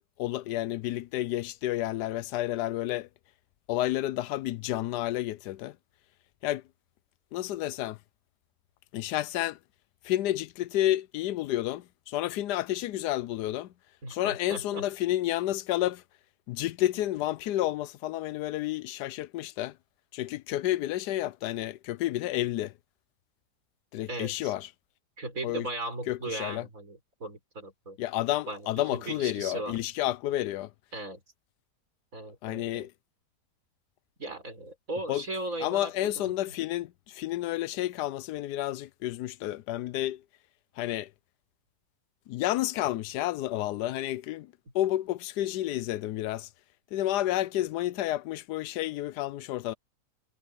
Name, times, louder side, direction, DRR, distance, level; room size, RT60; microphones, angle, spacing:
voice 1, 0.0-3.1 3.7-5.8 6.4-6.6 7.3-8.0 8.9-9.6 10.0-13.7 14.1-16.0 16.5-19.8 20.1-22.7 23.9-24.7 25.4-25.7 26.1-26.6 28.0-30.7 32.4-32.9 35.1-35.2 35.6-40.2 40.8-41.1 42.3-46.5 46.9-49.7, left 14 dB, 90° left, 1.2 m, -30 dB
voice 2, 14.0-14.9 24.1-24.5 25.2-28.0 28.5-29.8 30.9-31.2 32.1-32.9 34.2-36.3, right 2 dB, 55° right, 5.6 m, -37 dB
omnidirectional pair, 1.7 m